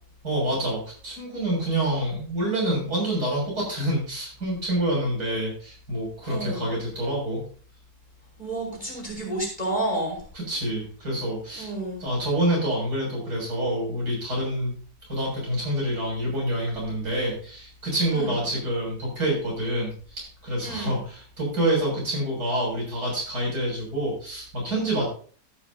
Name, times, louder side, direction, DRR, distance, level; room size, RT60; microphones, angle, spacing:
voice 1, 0.2-7.4 10.3-11.7 12.0-14.7 15.1-25.1, right 1 dB, 70° right, -3 dB, 7.6 m, -27 dB
voice 2, 6.3-6.7 8.4-10.2 11.5-12.0 18.1-18.3 20.6-21.0, right 1 dB, 25° left, -2 dB, 5.3 m, -30 dB
14.0 x 11.5 x 2.8 m, 0.43 s
omnidirectional pair, 1.7 m